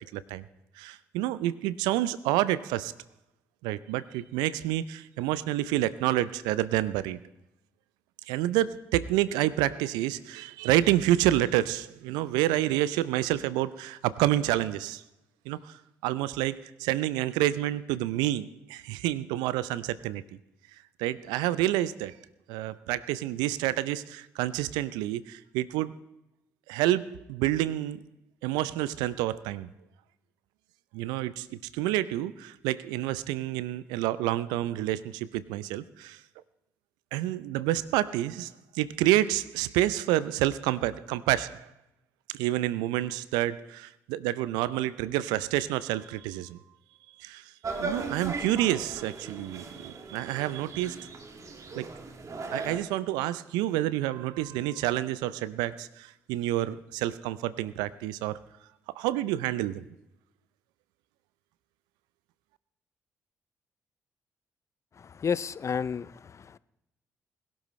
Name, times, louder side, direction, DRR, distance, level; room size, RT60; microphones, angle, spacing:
voice 1, 0.1-0.4 0.8-2.9 3.6-7.2 8.3-15.0 15.5-15.7 16.0-20.2 21.0-22.2 22.5-25.9 26.7-28.0 28.4-29.7 30.9-36.2 37.1-41.7 42.3-46.6 47.2-47.4 47.8-51.1 51.8-51.9 52.5-58.4 59.0-59.8, right 14 dB, 80° right, 17 dB, 0.5 m, -28 dB
sound 1, 47.6-52.8, right 3 dB, 50° right, 2.1 m, -38 dB
voice 2, 65.0-66.6, left 6 dB, 45° left, 19 dB, 0.5 m, -32 dB
21.0 x 12.0 x 3.2 m, 0.85 s
hypercardioid pair, 40°, 7 cm